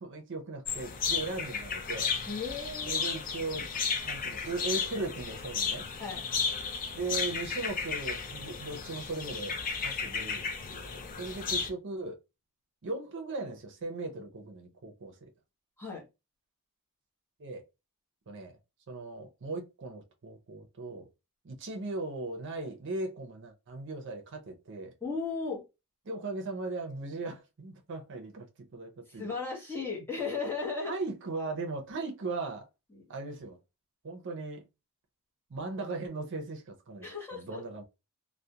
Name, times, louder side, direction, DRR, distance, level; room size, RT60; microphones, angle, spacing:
voice 1, 0.0-2.1 2.8-3.6 4.1-5.9 6.9-12.2 12.8-15.3 17.4-17.6 18.3-18.5 18.9-21.1 21.4-24.9 26.1-28.5 28.7-29.3 30.8-32.7 33.1-33.6 34.0-34.6 35.5-37.8, right 3 dB, 55° right, 0.6 m, -38 dB
sound 1, 0.7-11.7, left 5 dB, 40° left, 0.4 m, -34 dB
voice 2, 2.3-3.0 6.0-6.2 15.8-16.0 25.0-25.6 29.1-30.9 32.9-33.0 37.0-37.6, left 4 dB, 10° left, 0.9 m, -35 dB
2.4 x 2.1 x 2.7 m
head